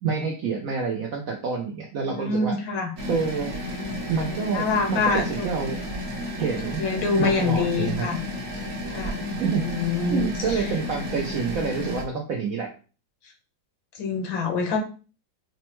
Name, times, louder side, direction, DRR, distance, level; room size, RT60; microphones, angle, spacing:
voice 1, 0.0-2.6 3.1-3.5 4.1-5.8 6.4-6.8 7.2-8.1 8.5-8.6 9.4-9.7 10.1-12.7, right 5 dB, 75° right, 1 dB, 0.8 m, -27 dB
voice 2, 2.1-2.9 4.2-5.5 6.8-8.2 8.9-9.2 9.6-10.6 14.0-14.8, left 4 dB, 90° left, 3 dB, 1.7 m, -26 dB
sound 1, 3.0-12.0, left 1 dB, 50° right, 1.1 m, -32 dB
5.2 x 2.2 x 2.9 m, 0.36 s
omnidirectional pair, 2.1 m